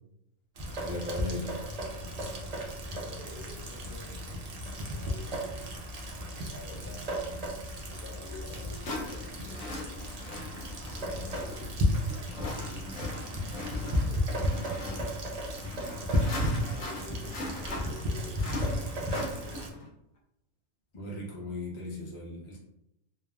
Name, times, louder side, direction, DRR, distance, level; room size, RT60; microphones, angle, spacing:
Rain, 0.5-19.7, equal, 85° right, 0.3 m, -34 dB
voice 1, 0.8-1.6 20.9-22.6, left 2 dB, 35° left, -4 dB, 0.5 m, -37 dB
voice 2, 2.7-4.2 4.7-5.4 6.3-7.2 7.8-10.2 10.9-13.0 13.6-15.0 16.3-19.6, left 2 dB, 55° left, -5 dB, 0.9 m, -49 dB
sound 1, 7.9-8.0 8.8-19.9, left 2 dB, 85° left, 1.1 m, -41 dB
3.2 x 2.0 x 2.3 m, 0.82 s
omnidirectional pair, 1.3 m